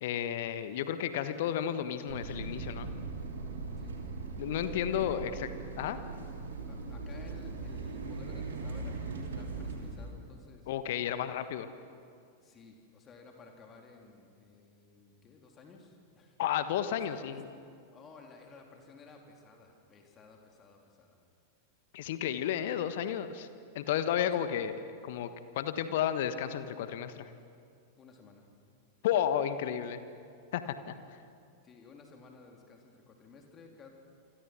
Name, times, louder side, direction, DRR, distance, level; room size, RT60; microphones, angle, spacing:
voice 1, 0.0-2.9 4.4-5.5 5.8-6.0 10.7-11.7 16.4-17.5 21.9-23.5 23.7-24.8 25.0-25.3 25.5-27.3 29.0-30.0 30.5-30.7, left 10 dB, 55° left, 11 dB, 1.3 m, -32 dB
sound 1, 2.1-10.1, right 3 dB, 65° right, 3.4 m, -39 dB
voice 2, 6.7-10.7 12.4-16.4 17.1-21.2 24.3-24.4 28.0-28.4 31.6-33.9, left 4 dB, 25° left, 2 dB, 3.4 m, -55 dB
27.5 x 26.5 x 6.1 m, 2.3 s
figure-of-eight pair, 90°, 0 cm